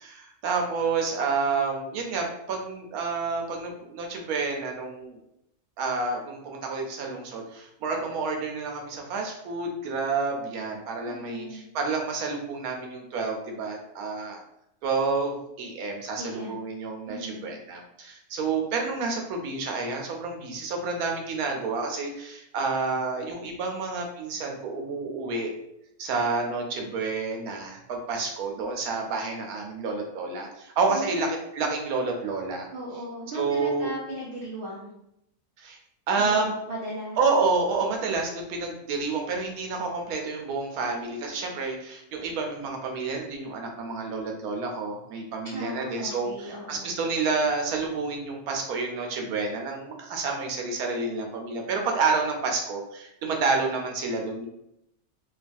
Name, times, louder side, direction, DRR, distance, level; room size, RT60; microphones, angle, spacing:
voice 1, 0.0-5.2 5.8-14.4 14.8-25.5 26.0-32.7 33.3-33.9 35.6-35.8 36.1-36.5 37.2-54.5, right 4 dB, 85° right, 2 dB, 1.1 m, -29 dB
voice 2, 11.1-11.6 16.2-16.7 17.1-17.5 30.9-31.3 32.7-34.9 36.2-37.2 45.4-46.9, right 1 dB, 55° right, -5 dB, 0.6 m, -37 dB
3.1 x 2.2 x 2.5 m, 0.79 s
omnidirectional pair, 1.5 m